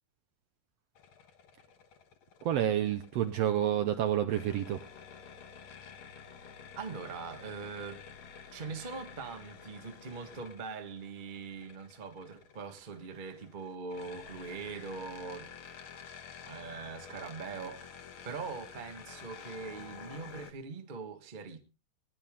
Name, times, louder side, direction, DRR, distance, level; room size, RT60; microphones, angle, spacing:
sound 1, 1.0-20.5, left 7 dB, 55° left, 1.7 m, -50 dB
voice 1, 2.4-4.8, right 11 dB, 70° right, 1.6 m, -29 dB
voice 2, 6.8-8.0 8.5-15.6 16.4-17.9 18.2-21.6, right 4 dB, 30° right, 0.8 m, -42 dB
20.0 x 10.5 x 3.6 m
omnidirectional pair, 3.6 m